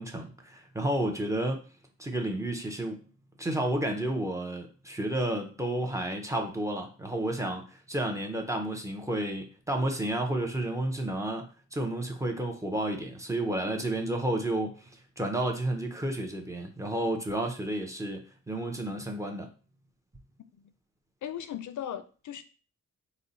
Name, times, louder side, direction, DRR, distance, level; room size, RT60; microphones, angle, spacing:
voice 1, 0.0-1.6 2.0-3.0 3.4-19.5, right 1 dB, 10° right, 2 dB, 0.5 m, -31 dB
voice 2, 21.2-22.4, left 10 dB, 85° left, 10 dB, 0.5 m, -38 dB
4.0 x 2.0 x 3.8 m, 0.37 s
wide cardioid pair, 175°, 29 cm